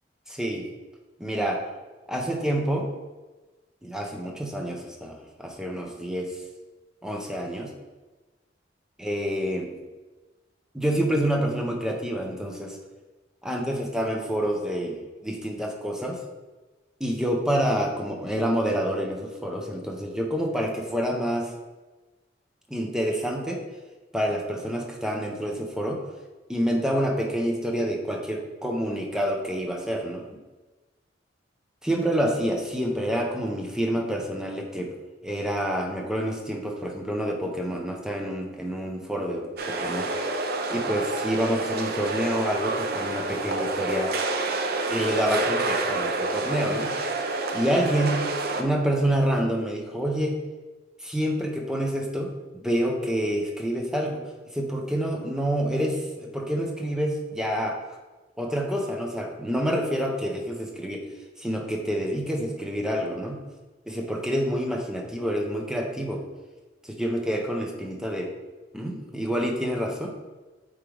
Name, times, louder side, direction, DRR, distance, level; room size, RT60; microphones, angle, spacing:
voice 1, 0.3-0.7 1.2-1.6 2.1-2.9 3.8-6.4 7.0-7.7 9.0-9.7 10.7-12.8 13.4-16.2 17.0-21.5 22.7-23.6 24.1-26.0 26.5-30.3 31.8-34.9 35.2-40.1 40.7-44.1 44.9-46.9 47.5-48.3 48.6-50.4 51.0-52.3 52.6-54.2 54.5-57.8 58.4-61.0 61.4-63.4 63.9-66.2 66.8-68.3 68.7-70.1, equal, 5° right, 1 dB, 0.8 m, -27 dB
sound 1, 39.6-48.6, right 2 dB, 55° right, 0.6 m, -28 dB
8.3 x 3.7 x 3.4 m, 1.2 s
head